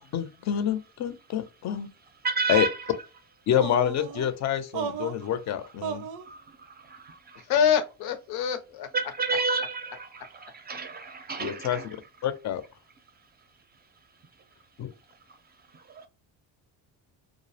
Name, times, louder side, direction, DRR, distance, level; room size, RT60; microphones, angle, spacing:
voice 1, 0.1-1.9 2.5-2.7 3.5-6.0 11.4-11.8 12.2-12.6 14.8-14.9, left 10 dB, 45° left, 0.5 m, -27 dB
voice 2, 2.2-3.0 5.0-5.1 6.2-7.5 8.9-12.0 15.1-15.4 15.7-16.1, right 4 dB, 25° right, 0.5 m, -32 dB
sound 1, 3.5-4.3 4.7-5.3 5.8-6.3, right 7 dB, 85° right, 0.6 m, -34 dB
voice 3, 7.5-8.9, left 8 dB, 85° left, 0.6 m, -25 dB
2.4 x 2.0 x 2.7 m
cardioid pair, 125°, 38 cm